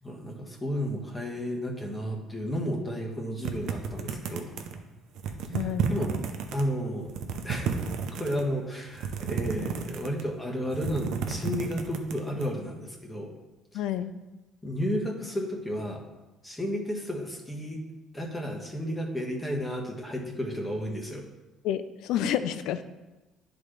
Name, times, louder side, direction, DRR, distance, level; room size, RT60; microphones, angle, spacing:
voice 1, 0.0-4.6 5.5-6.1 6.5-7.1 7.4-7.8 8.1-13.3 14.6-16.0 16.4-17.8 18.1-21.2, equal, 15° left, 0 dB, 1.3 m, -32 dB
sound 1, 3.4-4.8 5.2-6.6 7.0-8.4 8.9-10.3 10.6-12.5, right 6 dB, 75° right, 0.7 m, -32 dB
voice 2, 5.5-5.9 13.7-14.1 21.6-22.8, left 10 dB, 80° left, 12 dB, 0.4 m, -29 dB
10.5 x 4.0 x 3.3 m, 1.1 s
cardioid pair, 115°, 0 cm